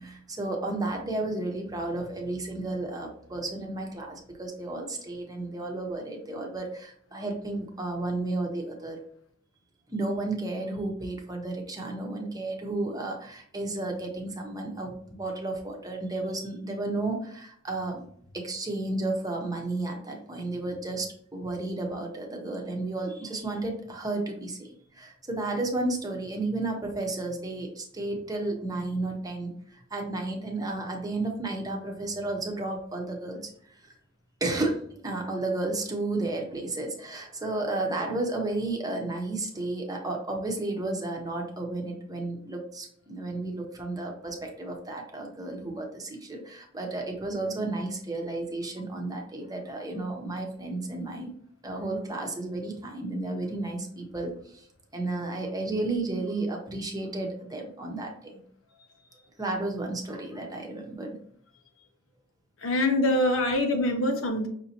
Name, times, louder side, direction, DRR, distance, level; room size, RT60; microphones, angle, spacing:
voice 1, 0.0-9.0 9.9-18.0 18.3-33.9 34.4-51.3 51.6-54.7 54.9-58.4 59.4-61.1, right 2 dB, 20° right, 1 dB, 0.9 m, -32 dB
voice 2, 62.6-64.5, left 1 dB, 75° left, 4 dB, 0.9 m, -24 dB
5.9 x 2.8 x 2.8 m, 0.63 s
head